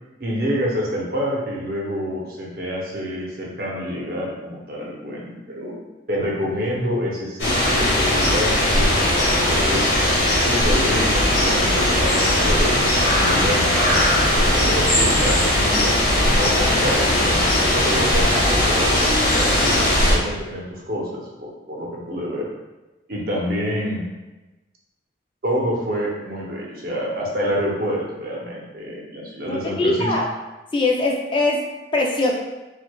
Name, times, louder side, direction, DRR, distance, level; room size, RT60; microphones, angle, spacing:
voice 1, 0.2-5.8 6.1-9.9 10.4-12.7 13.1-13.8 14.4-15.9 16.3-22.5 23.1-24.0 25.4-30.1, equal, 55° right, -3 dB, 0.7 m, -27 dB
sound 1, 7.4-20.1, left 1 dB, 70° left, 1.3 m, -18 dB
voice 2, 29.5-30.3 30.7-31.6 31.9-32.3, left 2 dB, 25° left, 0 dB, 0.3 m, -21 dB
4.6 x 2.4 x 2.2 m, 1.1 s
head